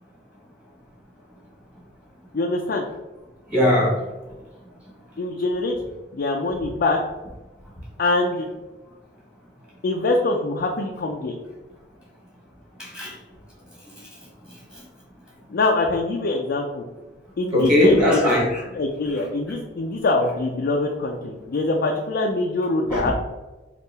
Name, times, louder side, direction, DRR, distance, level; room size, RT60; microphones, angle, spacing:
voice 1, 2.3-2.9 5.2-5.8 6.1-7.0 8.0-8.5 9.8-11.4 15.5-16.8 17.4-18.3 18.7-23.1, left 2 dB, 55° left, 1 dB, 0.4 m, -24 dB
voice 2, 3.5-4.0 12.8-13.1 17.5-18.6 22.9-23.1, left 1 dB, 5° right, -6 dB, 1.2 m, -19 dB
3.6 x 2.4 x 4.0 m, 1.1 s
head